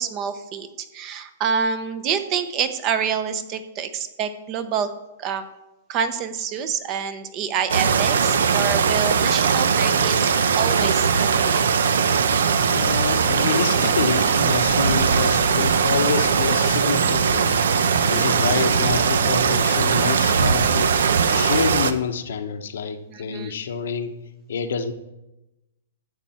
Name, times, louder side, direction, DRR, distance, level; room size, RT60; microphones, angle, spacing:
voice 1, 0.0-4.9 5.2-5.4 5.9-10.3 10.5-11.6 23.1-23.5, right 7 dB, 25° right, 11 dB, 0.8 m, -27 dB
sound 1, 7.7-21.9, right 6 dB, 85° right, 0.8 m, -20 dB
voice 2, 12.7-17.5 18.1-20.9 21.3-24.1 24.5-24.9, left 6 dB, 75° left, 8 dB, 1.0 m, -27 dB
13.0 x 8.0 x 4.3 m, 0.98 s
hypercardioid pair, 160°, 0 cm